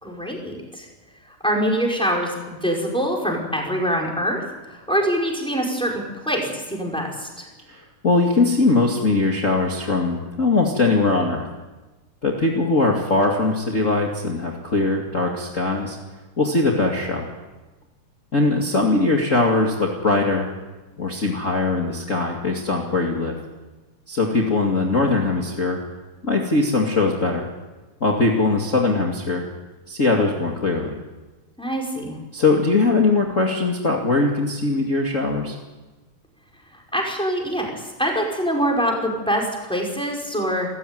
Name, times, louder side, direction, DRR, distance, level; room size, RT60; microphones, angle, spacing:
voice 1, 0.0-0.9 1.3-4.4 4.7-7.5 31.6-32.2 36.9-40.7, equal, ahead, -1 dB, 5.4 m, -24 dB
voice 2, 7.7-11.5 12.2-16.0 16.4-17.3 18.3-20.5 21.0-23.4 24.1-25.8 26.2-27.5 28.0-29.4 29.9-30.9 32.3-35.6, left 3 dB, 25° left, -1 dB, 2.3 m, -21 dB
28.5 x 15.0 x 9.4 m, 1.2 s
omnidirectional pair, 3.6 m